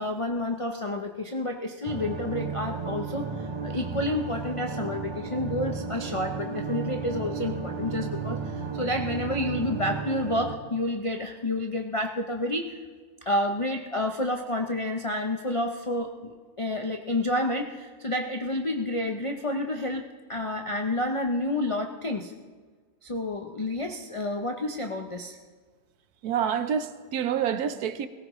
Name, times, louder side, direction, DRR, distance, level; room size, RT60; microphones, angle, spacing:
voice 1, 0.0-12.8 13.3-22.3 23.0-25.4, left 1 dB, 60° left, 0.3 m, -30 dB
sound 1, 1.8-10.5, right 5 dB, 45° right, 0.3 m, -33 dB
voice 2, 26.2-28.1, right 8 dB, 75° right, 1.2 m, -27 dB
17.5 x 17.5 x 3.1 m
omnidirectional pair, 1.7 m